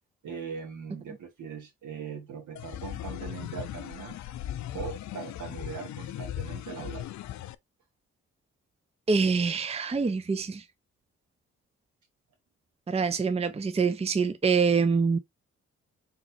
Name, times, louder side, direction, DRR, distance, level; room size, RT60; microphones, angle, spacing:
voice 1, 0.2-4.2 4.7-7.0, right 6 dB, 60° right, 1.7 m, -40 dB
sound 1, 2.6-7.6, left 12 dB, 60° left, 0.5 m, -38 dB
voice 2, 9.1-10.6 12.9-15.2, right 5 dB, 20° right, 0.6 m, -25 dB
4.3 x 3.9 x 2.7 m
hypercardioid pair, 40°, 33 cm